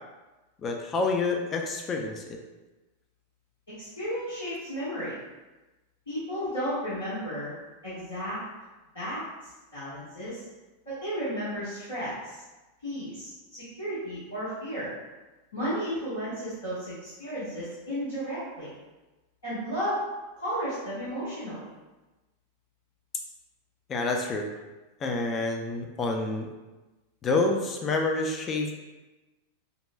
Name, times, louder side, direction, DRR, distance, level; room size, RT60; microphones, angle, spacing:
voice 1, 0.6-2.4 23.9-24.5 25.0-26.5 27.2-28.7, left 3 dB, 25° left, 2 dB, 0.4 m, -28 dB
voice 2, 3.8-5.2 6.1-7.5 7.8-8.4 8.9-9.2 9.7-10.4 10.8-12.4 12.8-14.9 15.5-18.7 19.4-20.0 20.4-21.7, equal, 70° left, -13 dB, 1.5 m, -33 dB
5.3 x 2.2 x 2.2 m, 1.1 s
figure-of-eight pair, 90°, 0 cm